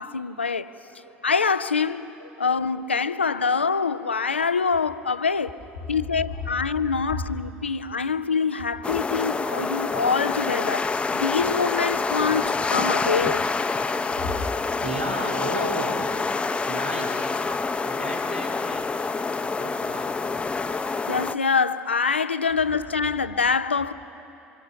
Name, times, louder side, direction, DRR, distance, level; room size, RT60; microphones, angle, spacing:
voice 1, 0.0-0.7 1.2-2.1 2.4-5.6 5.9-10.9 11.1-13.4 21.1-23.9, left 5 dB, 85° left, 0.4 m, -25 dB
voice 2, 0.6-1.5 1.9-3.1 4.6-4.9 5.8-6.0 6.2-6.9 8.0-8.5 8.8-9.5 13.4-17.3 17.8-19.1 19.4-20.4, equal, 90° right, 2.6 m, -36 dB
sound 1, 8.8-21.4, left 4 dB, 20° left, 0.7 m, -27 dB
25.0 x 23.5 x 5.9 m
figure-of-eight pair, 60°, 6 cm